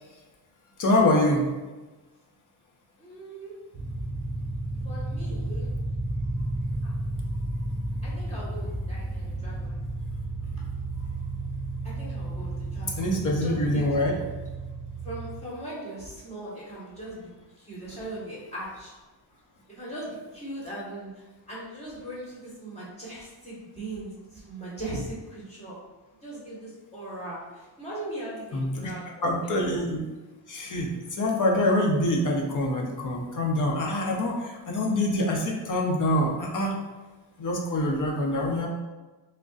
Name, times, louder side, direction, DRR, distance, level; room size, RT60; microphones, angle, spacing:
voice 1, 0.8-1.4 13.0-14.2 28.5-28.9 29.2-30.0 30.5-36.7 37.4-38.7, left 1 dB, 45° left, -1 dB, 0.8 m, -25 dB
voice 2, 3.0-3.5 4.8-5.7 6.8-6.9 8.0-9.8 11.9-13.1 13.4-13.9 15.0-17.3 17.6-18.9 19.7-21.1 21.5-25.8 26.2-29.6, right 1 dB, 15° left, -8 dB, 1.4 m, -39 dB
sound 1, 3.7-15.4, right 2 dB, 30° right, 0.6 m, -32 dB
6.2 x 2.2 x 2.5 m, 1.2 s
wide cardioid pair, 150°, 45 cm